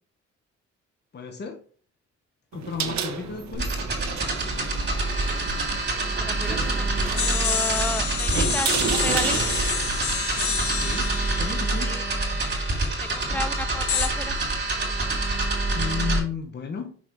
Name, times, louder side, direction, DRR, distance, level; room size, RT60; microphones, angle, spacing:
voice 1, 1.1-1.6 2.5-3.8 10.7-11.1 11.4-11.9 13.2-13.5 15.7-16.9, left 6 dB, 35° left, 1.0 m, -33 dB
sound 1, 2.5-11.3, right 6 dB, 70° right, 1.1 m, -32 dB
sound 2, 3.5-16.2, right 2 dB, 40° right, 2.9 m, -26 dB
voice 2, 6.2-6.9 7.2-9.4 11.9-12.0 12.9-14.3, left 1 dB, 5° left, 0.6 m, -33 dB
sound 3, 7.2-12.9 13.9-14.1, left 7 dB, 70° left, 1.2 m, -29 dB
5.9 x 4.2 x 4.5 m
cardioid pair, 85°, 29 cm